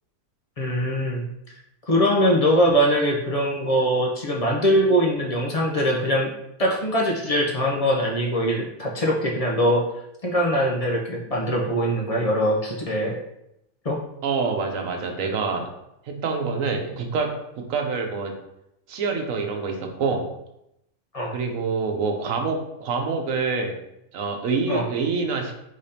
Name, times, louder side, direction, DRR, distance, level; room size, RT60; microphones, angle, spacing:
voice 1, 0.6-1.3 1.9-6.3 6.6-9.8 10.2-13.2 13.8-14.0 21.1-21.4 24.7-24.9, equal, 40° left, -2 dB, 0.6 m, -22 dB
voice 2, 14.2-15.7 16.0-18.3 18.9-20.2 21.3-23.7 24.1-25.5, right 4 dB, 85° right, 3 dB, 1.2 m, -26 dB
5.0 x 3.7 x 2.8 m, 0.83 s
omnidirectional pair, 1.4 m